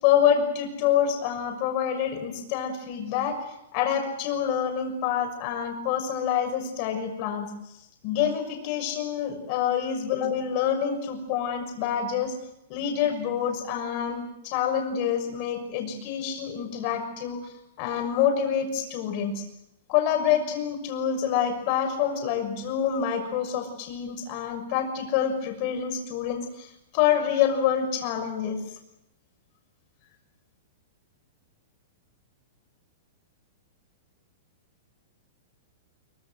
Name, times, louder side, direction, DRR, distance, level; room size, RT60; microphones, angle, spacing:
voice 1, 0.0-3.4 3.7-7.5 8.0-12.3 12.7-19.4 19.9-26.7 26.9-28.6, left 8 dB, 35° left, 5 dB, 6.4 m, -27 dB
25.5 x 24.5 x 7.9 m, 0.83 s
supercardioid pair, 170°, 0 cm